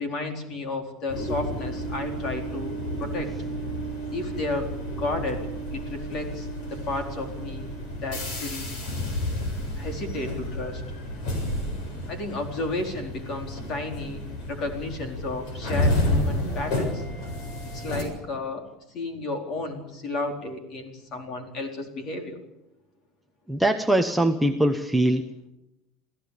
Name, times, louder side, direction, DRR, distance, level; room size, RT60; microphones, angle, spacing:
voice 1, 0.0-2.7 3.0-3.3 4.1-4.7 5.0-7.7 8.0-8.7 9.8-10.8 12.1-17.0 17.7-22.4, left 2 dB, 35° left, 4 dB, 4.2 m, -32 dB
sound 1, 1.1-18.0, left 1 dB, 50° left, 7.2 m, -31 dB
voice 2, 23.5-25.2, right 1 dB, ahead, 4 dB, 0.9 m, -22 dB
27.5 x 16.0 x 8.5 m, 0.93 s
cardioid pair, 180°, 0 cm